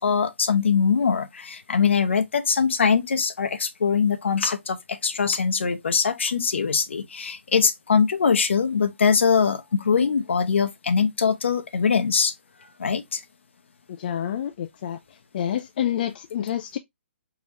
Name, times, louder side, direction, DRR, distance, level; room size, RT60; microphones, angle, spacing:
voice 1, 0.0-12.3 12.8-13.2, left 6 dB, 70° left, 0.8 m, -22 dB
voice 2, 14.0-16.8, left 10 dB, 45° left, 0.4 m, -28 dB
4.8 x 2.9 x 2.9 m
figure-of-eight pair, 135°, 7 cm